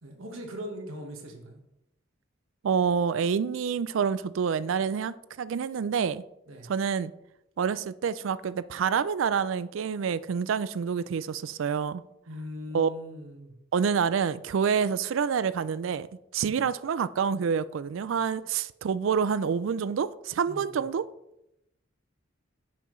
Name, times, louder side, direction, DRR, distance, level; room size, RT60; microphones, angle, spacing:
voice 1, 0.0-1.6 6.5-6.7 12.3-13.6 16.4-16.6 20.5-20.8, left 1 dB, 85° right, 1.5 m, -41 dB
voice 2, 2.6-6.2 6.6-7.1 7.6-12.0 12.7-12.9 13.7-16.1 16.3-21.0, right 6 dB, 70° right, 0.4 m, -27 dB
9.2 x 5.9 x 3.2 m
head